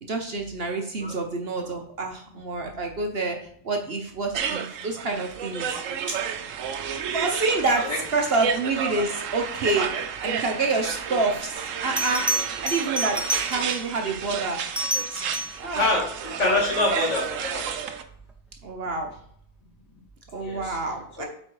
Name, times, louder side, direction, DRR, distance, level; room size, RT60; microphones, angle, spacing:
voice 1, 0.0-3.4 3.6-5.8 6.1-6.2 7.1-7.8 8.1-9.9 10.2-12.2 12.6-13.2 13.5-14.6 15.1-15.2 15.6-15.9 16.4-16.6 18.6-19.1 20.3-21.2, right 3 dB, 50° right, 3 dB, 1.1 m, -27 dB
sound 1, 4.3-18.0, right 8 dB, 70° right, 1.1 m, -31 dB
Bell, 11.3-11.4 12.0-13.9 14.6-15.7 18.3-18.6, right 1 dB, ahead, 0.4 m, -29 dB
voice 2, 15.7-17.7 20.4-20.8 21.2-21.3, left 2 dB, 55° left, -1 dB, 2.6 m, -26 dB
8.3 x 4.4 x 4.7 m, 0.65 s
omnidirectional pair, 1.4 m